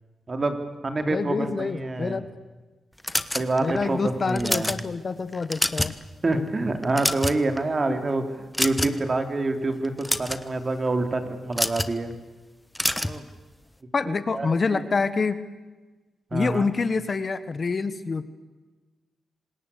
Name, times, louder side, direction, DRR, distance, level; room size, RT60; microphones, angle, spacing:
voice 1, 0.3-0.6 0.8-2.2 3.3-4.7 6.2-8.2 8.6-12.1 13.0-13.3 14.0-14.9 16.3-16.7, right 2 dB, 40° right, 7 dB, 3.2 m, -27 dB
voice 2, 1.0-2.3 3.6-5.9 13.9-15.4 16.3-18.2, left 4 dB, 45° left, 13 dB, 1.5 m, -26 dB
sound 1, 3.0-3.8 4.3-4.8 5.3-6.0 6.3-6.5 6.8-7.6 8.5-9.1 9.8-10.4 11.5-11.9 12.7-13.2, left 1 dB, 10° left, 1.3 m, -26 dB
26.5 x 20.0 x 8.5 m, 1.2 s
cardioid pair, 70°, 0 cm